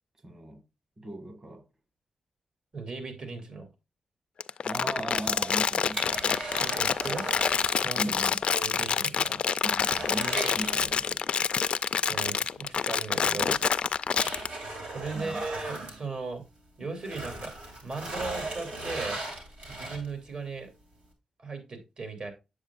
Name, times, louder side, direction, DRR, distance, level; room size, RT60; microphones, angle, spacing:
voice 1, 0.2-0.6 1.0-1.6 4.6-6.1 8.0-8.4 9.6-11.2 15.1-15.4, right 1 dB, 35° right, 1.7 m, -38 dB
voice 2, 2.7-3.7 6.6-7.3 7.8-8.2 8.5-9.4 12.1-13.6 14.9-16.4 16.8-19.2 19.7-20.7 21.4-22.3, right 4 dB, 55° right, 2.7 m, -37 dB
Crumpling crinkling, 4.4-14.5, left 6 dB, 60° left, 0.3 m, -27 dB
sound 1, 5.0-8.0 8.3-8.4 8.8-8.9 9.3-11.3 12.7-12.8 13.5-16.6 16.9-20.3 20.8-20.9, right 2 dB, 80° right, 2.6 m, -38 dB
8.4 x 7.1 x 2.4 m
cardioid pair, 85°, 2 cm